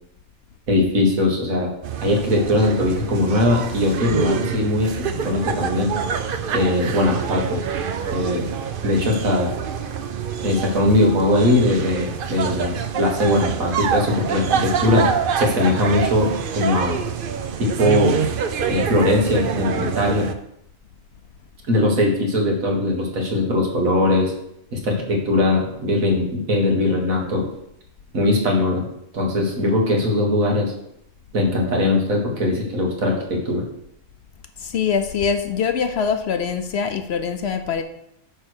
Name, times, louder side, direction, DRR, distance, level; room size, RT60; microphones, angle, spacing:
voice 1, 0.7-1.7 2.0-5.9 6.5-7.6 8.1-8.5 8.8-9.5 10.4-17.0 17.6-18.2 18.7-20.3 21.7-24.3 24.7-27.5 28.1-28.9 29.1-30.7 31.3-33.6, left 1 dB, 90° right, 0 dB, 1.9 m, -20 dB
sound 1, 1.8-20.3, right 7 dB, 55° right, 0.6 m, -26 dB
voice 2, 34.6-37.8, left 6 dB, 60° left, 8 dB, 0.8 m, -23 dB
9.1 x 3.2 x 6.3 m, 0.78 s
omnidirectional pair, 1.4 m